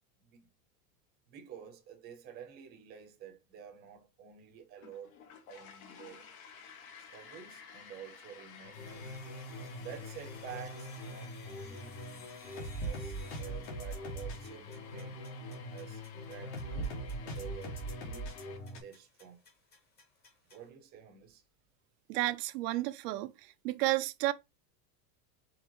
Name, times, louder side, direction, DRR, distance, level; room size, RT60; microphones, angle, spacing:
voice 1, 1.3-5.2 5.5-6.3 7.1-9.1 9.8-12.0 12.4-15.2 15.7-17.0 17.2-18.3 18.8-19.4 20.5-21.4, right 8 dB, 20° right, 0.7 m, -50 dB
sound 1, 4.8-18.6, left 7 dB, 65° left, 1.1 m, -54 dB
sound 2, 8.6-18.8, right 1 dB, 50° left, 1.4 m, -41 dB
sound 3, 8.7-20.7, left 3 dB, 20° left, 1.1 m, -61 dB
voice 2, 22.1-23.3 23.6-24.3, right 17 dB, 90° right, 0.6 m, -31 dB
4.6 x 3.2 x 3.0 m
supercardioid pair, 175°, 46 cm